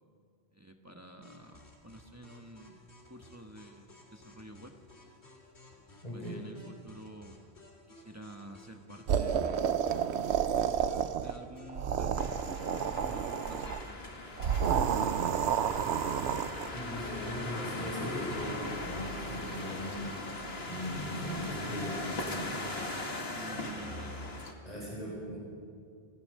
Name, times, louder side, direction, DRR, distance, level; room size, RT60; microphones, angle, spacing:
voice 1, 0.5-4.8 5.7-7.4 7.9-10.0 10.8-14.7 23.3-24.2, right 1 dB, 15° right, 4 dB, 1.2 m, -50 dB
sound 1, 1.2-11.8, left 1 dB, 85° left, 3.5 m, -57 dB
voice 2, 6.0-6.4 16.7-22.5 23.5-23.7 24.6-25.4, equal, 35° left, -4 dB, 5.0 m, -39 dB
sound 2, 9.1-11.4 11.7-13.8 14.4-16.7, right 8 dB, 85° right, 1.0 m, -30 dB
sound 3, 12.2-24.5, left 2 dB, 70° left, 2.2 m, -39 dB
26.5 x 16.5 x 6.6 m, 2.3 s
omnidirectional pair, 1.1 m